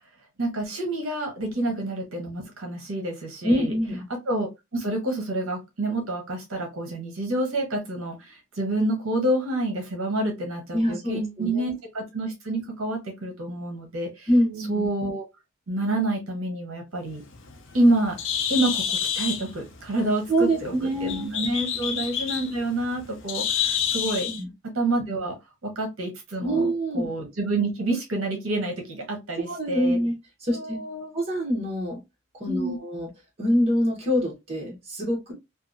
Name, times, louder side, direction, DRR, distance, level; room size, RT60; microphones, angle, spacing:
voice 1, 0.4-3.7 4.3-14.3 14.7-15.2 15.7-17.2 17.7-18.2 18.5-24.3 24.7-25.4 25.6-26.7 26.9-30.0 30.5-31.1 32.5-32.8, right 1 dB, 65° right, 1 dB, 0.8 m, -28 dB
voice 2, 3.4-4.0 10.7-11.7 14.3-14.9 20.3-21.3 24.3-24.5 26.4-27.1 29.5-30.1 30.4-30.8 31.1-32.0 32.4-33.1 33.4-35.3, equal, 30° right, -3 dB, 1.0 m, -25 dB
Bird, 17.1-24.4, left 8 dB, 55° left, 0.5 m, -29 dB
2.8 x 2.3 x 2.4 m, 0.22 s
head